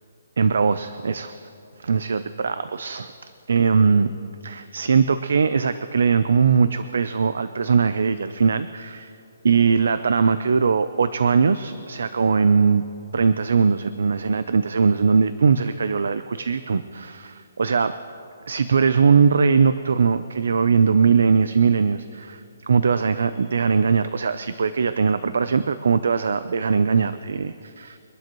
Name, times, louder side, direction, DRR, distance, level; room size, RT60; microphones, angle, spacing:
voice 1, 0.4-1.5 1.8-3.1 3.5-4.1 4.4-9.1 9.4-12.8 13.1-18.0 18.5-28.0, right 5 dB, 70° right, 12 dB, 0.5 m, -20 dB
24.5 x 12.0 x 3.1 m, 2.6 s
hypercardioid pair, 165°, 0 cm